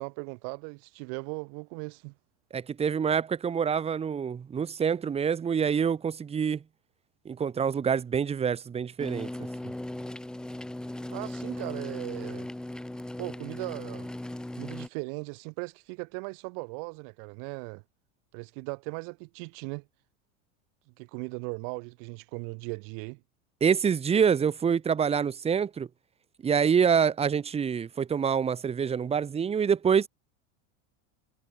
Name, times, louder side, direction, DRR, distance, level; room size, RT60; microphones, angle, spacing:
voice 1, 0.0-2.1 11.1-12.5 13.2-14.1 14.6-17.8 18.3-19.8 21.0-23.2, right 40 dB or more, 60° right, 2.1 m, -38 dB
voice 2, 2.5-6.6 7.2-9.3 23.6-25.9 26.4-30.1, right 7 dB, 15° right, 1.0 m, -26 dB
sound 1, 9.0-14.9, left 1 dB, ahead, 0.4 m, -38 dB
supercardioid pair, 135°, 37 cm